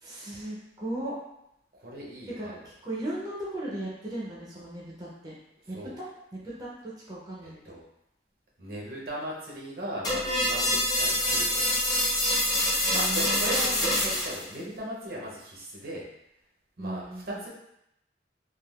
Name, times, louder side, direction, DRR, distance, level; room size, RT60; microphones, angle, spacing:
voice 1, 0.0-1.2 2.4-2.5 2.8-5.3 5.7-6.0 6.3-7.6 12.7-14.0 16.8-17.4, right 1 dB, 20° right, -6 dB, 0.5 m, -37 dB
voice 2, 1.7-2.7 5.7-5.9 7.4-7.8 8.6-12.0 12.9-16.0 16.8-17.5, right 1 dB, 55° right, -4 dB, 0.7 m, -38 dB
sound 1, 10.0-14.4, left 1 dB, 20° left, 0.7 m, -26 dB
3.5 x 2.3 x 2.3 m, 0.82 s
head